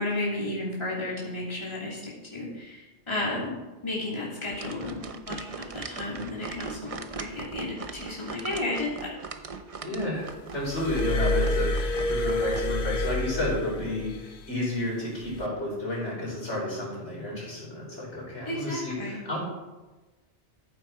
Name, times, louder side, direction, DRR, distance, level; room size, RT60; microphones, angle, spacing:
voice 1, 0.0-9.1 18.4-19.2, left 2 dB, 25° left, -5 dB, 2.7 m, -33 dB
sound 1, 4.5-12.6, right 4 dB, 35° right, 0.7 m, -40 dB
voice 2, 9.8-10.2 10.5-19.4, left 1 dB, 70° left, -5 dB, 5.0 m, -31 dB
Glass, 10.7-14.3 15.2-15.5, left 2 dB, 55° left, 0.9 m, -28 dB
14.0 x 7.9 x 4.6 m, 1.2 s
omnidirectional pair, 1.2 m